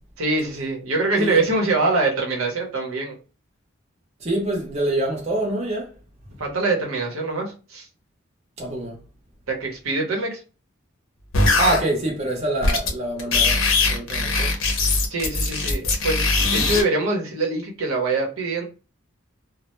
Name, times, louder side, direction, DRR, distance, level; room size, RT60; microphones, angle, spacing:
voice 1, 0.2-3.2 6.4-7.9 9.5-10.4 15.1-18.6, right 3 dB, 90° right, 0.8 m, -24 dB
voice 2, 4.2-5.9 8.6-9.0 11.5-13.6 13.9-14.5, right 2 dB, 30° right, 0.6 m, -25 dB
sound 1, 11.3-11.8 12.6-12.9 13.2-16.8, left 3 dB, 70° left, 0.6 m, -20 dB
2.1 x 2.0 x 2.9 m
head